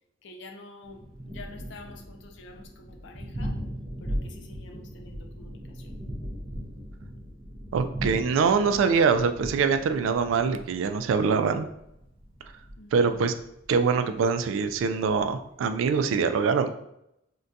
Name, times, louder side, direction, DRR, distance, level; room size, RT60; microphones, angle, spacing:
voice 1, 0.2-1.0 1.3-3.6 4.0-5.9 12.8-13.1, left 2 dB, 65° left, 4 dB, 0.5 m, -47 dB
Thunder, 0.8-16.1, equal, 30° right, 0.5 m, -39 dB
voice 2, 7.7-11.7 12.9-13.3 13.7-16.7, right 5 dB, 75° right, 10 dB, 0.3 m, -24 dB
3.7 x 2.2 x 2.6 m, 0.80 s
head